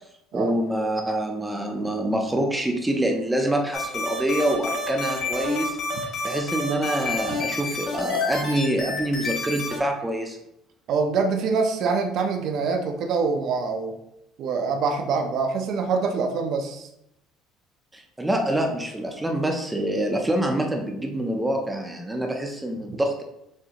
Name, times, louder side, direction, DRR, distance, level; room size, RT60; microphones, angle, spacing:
voice 1, 0.3-5.8 6.2-10.4 17.9-23.2, right 1 dB, 10° right, 3 dB, 0.5 m, -26 dB
sound 1, 3.7-9.8, left 3 dB, 55° left, 1.6 m, -29 dB
voice 2, 10.9-13.9 14.4-16.9, right 4 dB, 55° right, 5 dB, 0.6 m, -25 dB
6.3 x 2.6 x 2.9 m, 0.80 s
cardioid pair, 150°, 0 cm